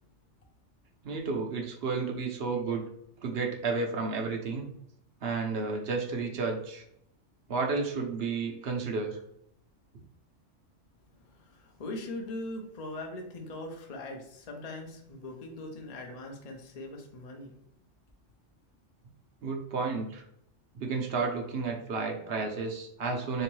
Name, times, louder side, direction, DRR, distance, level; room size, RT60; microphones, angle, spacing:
voice 1, 1.0-2.9 3.2-4.6 5.2-6.8 7.5-9.2 19.4-20.2 20.7-23.4, right 4 dB, 60° right, 2 dB, 0.8 m, -32 dB
voice 2, 11.2-17.5, left 2 dB, 45° left, 2 dB, 0.5 m, -41 dB
3.4 x 2.9 x 3.1 m, 0.73 s
omnidirectional pair, 1.3 m